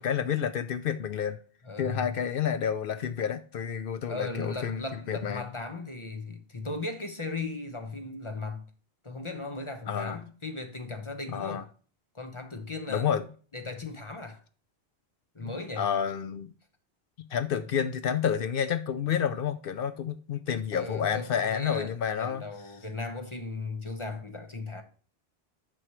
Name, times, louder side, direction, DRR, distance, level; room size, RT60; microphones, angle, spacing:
voice 1, 0.0-1.4 1.8-5.4 9.9-10.2 11.3-11.6 12.9-13.2 15.4-16.5 17.2-22.4, left 8 dB, 65° left, 0.7 m, -30 dB
voice 2, 1.6-2.1 4.1-8.6 9.0-11.7 12.1-13.1 13.5-14.4 15.3-15.9 17.6-17.7 20.7-24.8, left 3 dB, 30° left, 0.9 m, -37 dB
7.9 x 6.2 x 3.0 m
omnidirectional pair, 1.1 m